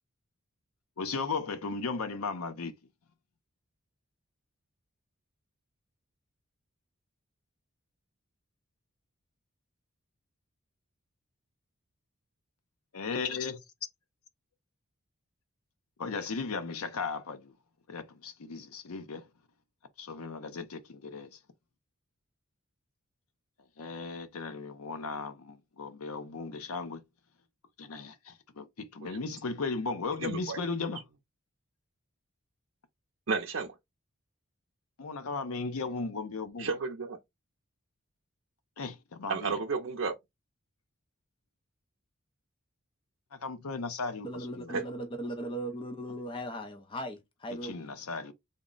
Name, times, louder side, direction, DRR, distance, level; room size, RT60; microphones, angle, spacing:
voice 1, 1.0-2.7 12.9-13.6 16.0-17.5 17.9-19.3 20.0-21.4 23.8-27.0 27.8-31.0 35.0-36.7 38.8-39.6 43.3-44.8 47.6-48.3, left 4 dB, 90° left, 0.6 m, -36 dB
voice 2, 30.2-30.6 33.3-33.7 36.6-37.2 39.3-40.1 44.7-44.8, right 4 dB, 60° right, 0.5 m, -32 dB
voice 3, 44.2-47.7, right 1 dB, 25° left, 0.5 m, -38 dB
3.6 x 2.0 x 3.8 m
head